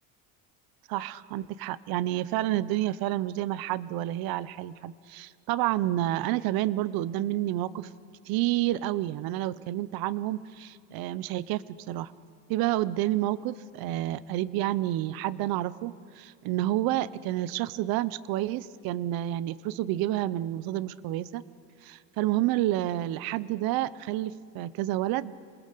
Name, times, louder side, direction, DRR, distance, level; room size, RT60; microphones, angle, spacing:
voice 1, 0.9-7.9 8.3-12.1 12.5-21.4 21.8-25.3, right 14 dB, 70° right, 18 dB, 0.8 m, -29 dB
27.5 x 20.0 x 6.7 m, 2.5 s
cardioid pair, 120°, 38 cm